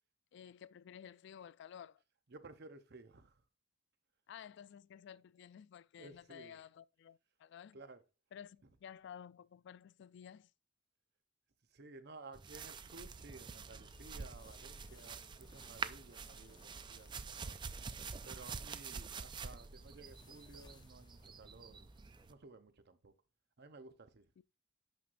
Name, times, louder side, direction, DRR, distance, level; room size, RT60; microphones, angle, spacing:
voice 1, 0.3-2.0 4.3-7.8 8.3-10.5, left 8 dB, 65° left, 0.3 m, -53 dB
voice 2, 2.3-3.4 6.0-6.6 7.7-8.0 11.7-17.6 18.2-21.9 22.3-23.1 23.6-24.3, right 3 dB, 55° right, 0.8 m, -56 dB
sound 1, 12.3-22.3, right 5 dB, 25° right, 0.3 m, -47 dB
sound 2, 13.3-22.3, left 2 dB, 20° left, 0.6 m, -64 dB
9.0 x 6.3 x 2.5 m
head